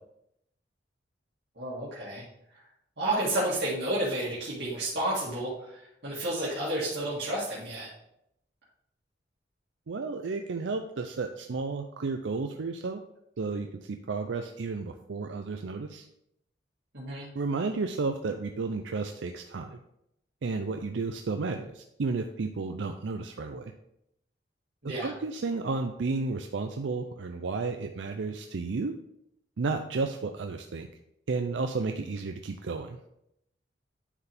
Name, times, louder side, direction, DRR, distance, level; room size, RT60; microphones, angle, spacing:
voice 1, 1.6-2.3 2.5-2.6 3.0-7.9 16.9-17.3 24.8-25.1, right 1 dB, 70° right, -9 dB, 2.1 m, -31 dB
voice 2, 9.9-13.0 13.4-16.0 17.3-19.8 20.4-23.7 25.0-28.9 29.6-30.9 31.3-33.0, right 4 dB, 85° right, 5 dB, 0.5 m, -32 dB
9.9 x 4.7 x 3.5 m, 0.79 s
head